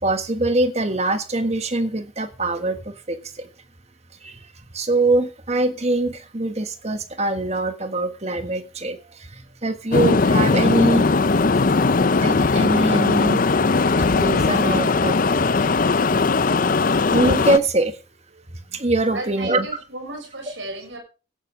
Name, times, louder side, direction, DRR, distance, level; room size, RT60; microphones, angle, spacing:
voice 1, 0.0-3.5 4.2-4.5 4.7-11.1 11.7-11.8 12.2-15.5 17.1-18.0 18.7-19.7, right 2 dB, 35° right, 9 dB, 1.5 m, -23 dB
sound 1, 9.9-17.6, left 4 dB, 45° left, 0.6 m, -19 dB
voice 2, 19.1-21.0, right 2 dB, 75° right, 1 dB, 6.7 m, -34 dB
16.5 x 12.5 x 3.6 m, 0.34 s
head